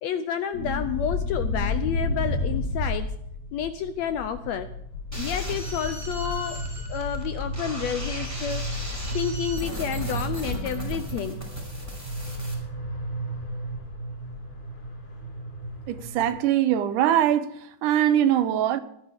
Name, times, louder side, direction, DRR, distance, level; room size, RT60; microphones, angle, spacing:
voice 1, 0.0-3.1 3.5-4.7 5.1-6.6 6.9-8.7 9.1-11.4, left 8 dB, 75° left, 1.6 m, -30 dB
sound 1, 0.5-16.4, left 1 dB, 60° left, 4.5 m, -32 dB
sound 2, 5.1-12.5, equal, 5° right, 4.9 m, -36 dB
voice 2, 15.9-17.5 17.8-18.8, right 11 dB, 80° right, 2.3 m, -22 dB
24.5 x 9.9 x 3.6 m
omnidirectional pair, 3.7 m